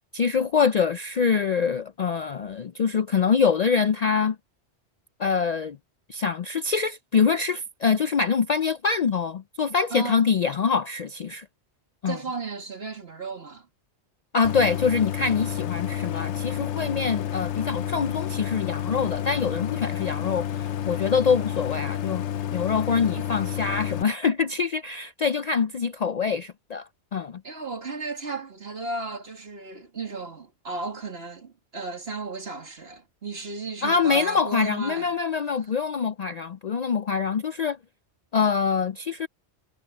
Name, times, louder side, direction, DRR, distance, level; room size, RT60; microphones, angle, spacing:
voice 1, 0.1-4.4 5.2-5.8 6.1-11.5 12.0-12.2 14.3-22.2 22.5-27.4 33.8-37.8 38.3-39.3, left 5 dB, 55° left, 0.5 m, -24 dB
voice 2, 9.9-10.3 12.1-13.7 27.4-35.1, right 3 dB, 60° right, 2.5 m, -34 dB
Idling, 14.4-24.0, left 10 dB, 90° left, 1.0 m, -30 dB
omnidirectional pair, 1.2 m